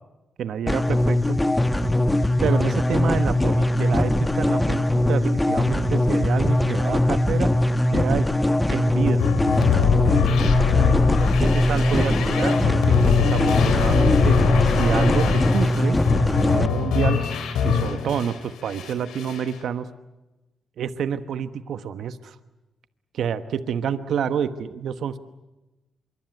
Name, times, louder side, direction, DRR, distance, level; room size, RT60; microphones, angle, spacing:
voice 1, 0.4-1.4 2.4-7.5 7.9-8.3 8.7-9.2 10.9-17.2 17.6-19.9 20.8-22.3 23.1-25.2, right 8 dB, 75° right, 11 dB, 1.1 m, -28 dB
sound 1, 0.7-16.7, left 1 dB, 15° left, 1.2 m, -21 dB
sound 2, 9.2-18.4 18.7-19.5, left 6 dB, 90° left, 3.2 m, -22 dB
25.5 x 23.5 x 8.1 m, 1.0 s
cardioid pair, 65°, 0 cm